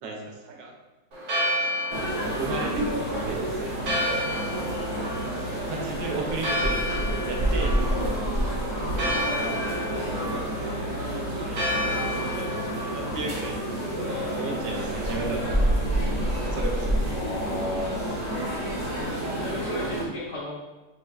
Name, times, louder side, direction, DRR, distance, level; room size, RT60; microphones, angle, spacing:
voice 1, 0.0-0.7 2.2-4.3 5.3-6.8 7.3-8.1 9.4-9.7 10.4-10.7 11.4-11.7 12.3-13.7 14.3-15.6 16.5-17.0, right 3 dB, 80° right, 0 dB, 1.4 m, -35 dB
Church bell, 1.1-15.2, equal, 60° right, 1.4 m, -32 dB
sound 1, 1.9-20.0, right 1 dB, 35° right, 0.7 m, -28 dB
voice 2, 17.1-18.2 19.3-20.6, left 1 dB, 65° left, -6 dB, 1.8 m, -33 dB
5.4 x 3.2 x 2.3 m, 1.2 s
omnidirectional pair, 2.0 m